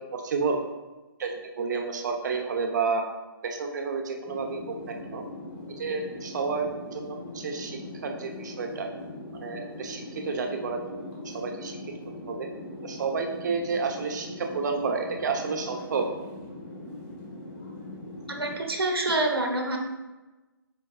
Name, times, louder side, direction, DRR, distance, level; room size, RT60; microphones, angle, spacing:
voice 1, 0.1-0.6 1.2-3.0 3.4-4.6 4.9-5.2 5.8-8.9 9.4-11.0 11.3-11.8 12.3-12.5 12.8-16.0, right 4 dB, 50° right, 3 dB, 0.9 m, -30 dB
sound 1, 4.2-18.6, left 1 dB, 25° left, 1.6 m, -41 dB
voice 2, 18.3-19.8, right 2 dB, 85° right, 2 dB, 1.2 m, -27 dB
8.2 x 5.2 x 2.4 m, 1.2 s
figure-of-eight pair, 135°, 12 cm